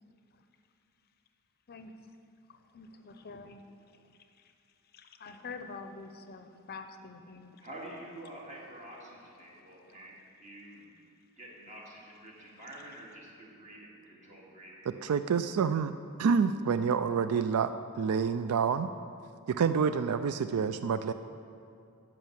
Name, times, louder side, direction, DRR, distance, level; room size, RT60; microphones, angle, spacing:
voice 1, 2.5-4.1 4.4-4.5 4.9-7.6 8.9-10.2 12.4-13.0, left 4 dB, 45° left, 8 dB, 0.6 m, -48 dB
voice 2, 7.6-10.9 11.4-14.8, right 1 dB, 35° right, -3 dB, 2.2 m, -48 dB
voice 3, 14.9-15.9 16.2-17.7 18.0-18.9 19.5-21.1, right 6 dB, 80° right, 11 dB, 0.4 m, -28 dB
11.0 x 5.3 x 7.5 m, 2.6 s
head